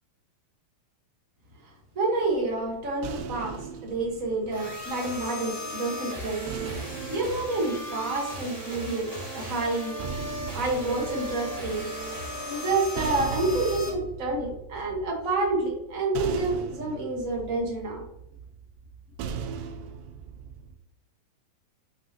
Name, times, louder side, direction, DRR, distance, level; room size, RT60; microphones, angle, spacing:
voice 1, 1.6-6.4 6.8-10.0 10.5-11.9 12.4-18.0, right 2 dB, 55° right, 0 dB, 0.8 m, -29 dB
sound 1, 2.2-5.5 6.5-8.7 9.7-20.8, right 6 dB, 85° right, 2.4 m, -39 dB
sound 2, 4.5-13.9, equal, 20° right, 1.1 m, -36 dB
7.4 x 5.6 x 2.9 m, 0.80 s
omnidirectional pair, 4.0 m